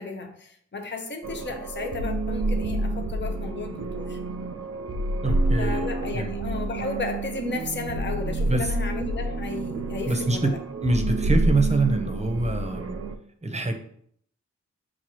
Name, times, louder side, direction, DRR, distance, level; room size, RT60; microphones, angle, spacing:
voice 1, 0.0-4.2 5.6-10.6, left 4 dB, 40° left, 4 dB, 0.7 m, -34 dB
sound 1, 1.2-13.2, right 2 dB, 55° right, 0.5 m, -28 dB
voice 2, 5.2-6.3 8.4-8.7 10.1-10.5 10.8-13.0 13.4-13.8, right 2 dB, 20° right, 5 dB, 0.8 m, -25 dB
5.9 x 2.4 x 2.9 m, 0.64 s
cardioid pair, 45°, 30 cm